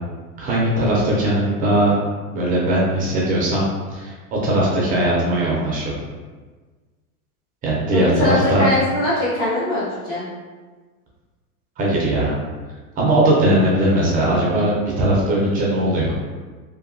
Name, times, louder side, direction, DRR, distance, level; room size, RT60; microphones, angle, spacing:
voice 1, 0.4-1.9 2.3-3.6 3.9-4.1 4.4-6.0 7.6-8.7 11.8-12.3 13.0-16.1, right 1 dB, 20° right, -5 dB, 0.4 m, -19 dB
voice 2, 7.9-10.2, left 1 dB, 45° left, -10 dB, 1.0 m, -21 dB
2.7 x 2.2 x 2.5 m, 1.4 s
supercardioid pair, 125°, 43 cm